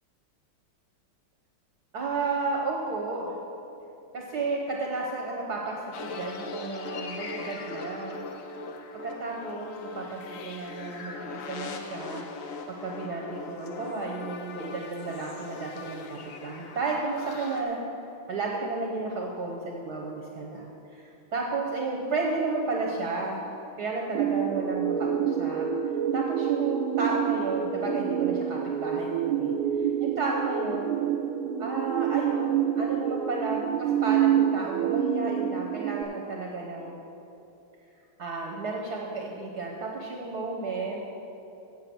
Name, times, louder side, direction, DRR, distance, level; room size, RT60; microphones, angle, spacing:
voice 1, 1.9-3.4 4.1-8.2 9.0-12.2 12.7-17.8 18.3-23.4 23.8-25.7 26.1-29.5 29.8-31.0 31.6-37.0 38.2-41.0, right 3 dB, 55° right, -1 dB, 1.4 m, -32 dB
sound 1, 5.9-17.6, left 3 dB, 70° left, 0.8 m, -40 dB
sound 2, 24.1-36.0, right 9 dB, 85° right, 1.5 m, -27 dB
7.6 x 7.5 x 7.7 m, 2.8 s
omnidirectional pair, 2.3 m